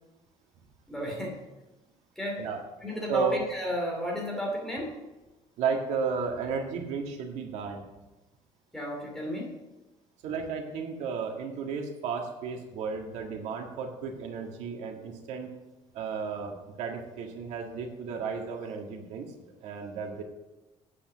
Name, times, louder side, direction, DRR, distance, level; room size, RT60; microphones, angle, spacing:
voice 1, 0.9-1.4 2.2-2.4 2.8-4.9 8.7-9.5, equal, 5° left, -1 dB, 2.6 m, -32 dB
voice 2, 5.6-7.8 10.2-15.5 15.9-19.3 19.6-20.2, right 5 dB, 80° right, 2 dB, 1.8 m, -33 dB
8.7 x 8.4 x 6.8 m, 1.1 s
cardioid pair, 175°, 12 cm